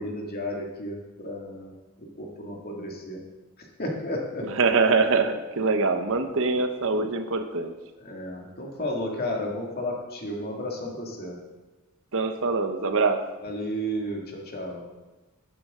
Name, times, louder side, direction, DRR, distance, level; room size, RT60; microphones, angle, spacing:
voice 1, 0.0-1.7 2.0-3.2 3.8-4.6 8.0-11.4 13.4-14.8, left 1 dB, 45° left, -1 dB, 2.2 m, -33 dB
voice 2, 4.4-7.7 12.1-13.2, right 4 dB, 65° right, 7 dB, 0.9 m, -24 dB
12.0 x 9.8 x 3.7 m, 1.2 s
head